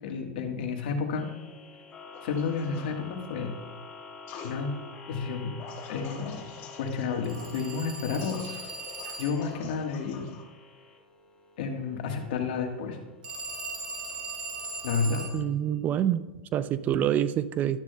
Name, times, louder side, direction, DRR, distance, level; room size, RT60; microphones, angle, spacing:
voice 1, 0.0-1.3 2.2-3.5 4.4-4.7 5.1-5.6 5.9-6.4 6.8-8.7 9.2-10.2 11.6-13.0 14.8-15.2, left 5 dB, 65° left, 4 dB, 1.5 m, -31 dB
sound 1, 1.2-15.4, left 3 dB, 20° left, 1.4 m, -49 dB
sound 2, 2.1-2.9 4.3-4.6 5.6-10.4, left 6 dB, 45° left, 1.5 m, -45 dB
Telephone, 7.2-9.6 13.2-15.4, right 3 dB, 75° right, 2.2 m, -39 dB
voice 2, 15.3-17.8, right 10 dB, 30° right, 15 dB, 0.4 m, -27 dB
12.0 x 9.9 x 2.3 m, 1.2 s
hypercardioid pair, 115°, 5 cm